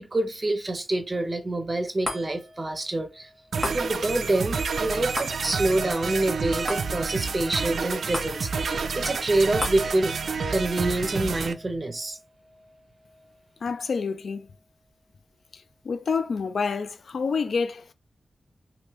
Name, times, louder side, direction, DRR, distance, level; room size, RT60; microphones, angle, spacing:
voice 1, 0.0-3.3 3.6-10.1 10.5-12.2, right 2 dB, 25° right, 0.6 m, -27 dB
sound 1, 2.0-14.6 15.1-15.2, left 1 dB, 10° left, 1.2 m, -40 dB
sound 2, 3.5-11.5, right 5 dB, 80° right, 0.3 m, -29 dB
voice 2, 13.6-14.5 15.8-17.8, left 5 dB, 70° left, 0.3 m, -28 dB
3.2 x 2.5 x 3.0 m
wide cardioid pair, 145°, 0 cm